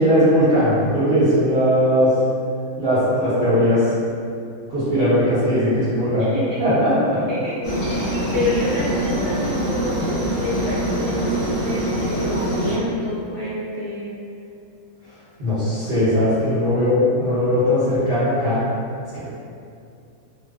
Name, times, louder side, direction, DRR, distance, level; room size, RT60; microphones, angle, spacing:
voice 1, 0.0-2.2 2.8-3.9 4.7-6.2 6.6-6.9 15.4-18.6, equal, 50° right, -14 dB, 0.9 m, -18 dB
voice 2, 6.2-6.7 7.3-14.2, left 1 dB, 20° left, -15 dB, 0.8 m, -28 dB
Aircraft, 7.6-12.8, right 1 dB, 55° left, 0.8 m, -24 dB
2.5 x 2.1 x 2.3 m, 2.5 s
omnidirectional pair, 1.5 m